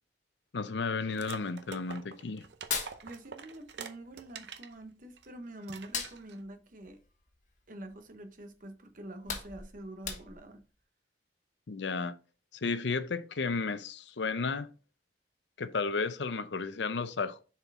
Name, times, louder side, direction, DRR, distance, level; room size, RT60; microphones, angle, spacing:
voice 1, 0.5-2.4 11.7-12.1 12.6-14.7 15.6-17.4, left 4 dB, 80° left, 0.6 m, -33 dB
sound 1, 1.1-4.7 5.2-5.3 5.6-6.4, right 6 dB, 70° right, 0.7 m, -46 dB
Hands, 2.5-3.8 4.0-5.3 5.7-8.1 8.5-8.6 9.0-10.6, left 6 dB, 45° left, 1.3 m, -39 dB
voice 2, 3.0-7.0 7.7-10.6, right 1 dB, 50° right, 1.0 m, -46 dB
6.8 x 4.4 x 3.7 m
head